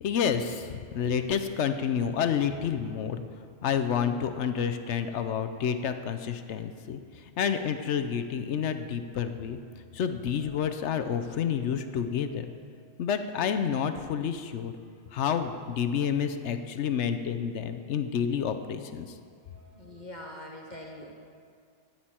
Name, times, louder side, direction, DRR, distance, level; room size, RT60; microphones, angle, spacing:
voice 1, 0.0-3.2 3.6-9.6 9.9-12.5 13.0-14.7 15.1-19.2, left 7 dB, 70° left, 9 dB, 0.9 m, -29 dB
voice 2, 19.4-21.4, left 1 dB, 40° left, 0 dB, 1.0 m, -44 dB
14.0 x 9.1 x 4.4 m, 2.2 s
omnidirectional pair, 1.3 m